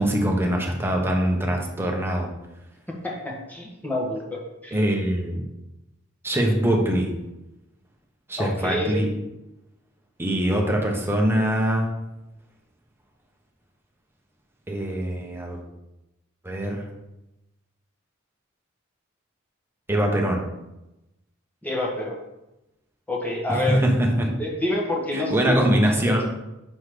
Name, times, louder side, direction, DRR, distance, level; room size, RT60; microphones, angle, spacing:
voice 1, 0.0-2.3 4.7-5.4 6.2-7.1 8.3-9.1 10.2-11.9 14.7-15.6 16.4-16.9 19.9-20.4 23.5-24.3 25.1-26.2, right 1 dB, 10° right, 0 dB, 1.0 m, -23 dB
voice 2, 3.0-4.8 8.4-9.1 21.6-22.2 23.1-23.8 24.4-26.2, left 1 dB, 10° left, -2 dB, 1.3 m, -28 dB
6.2 x 4.0 x 5.0 m, 0.94 s
head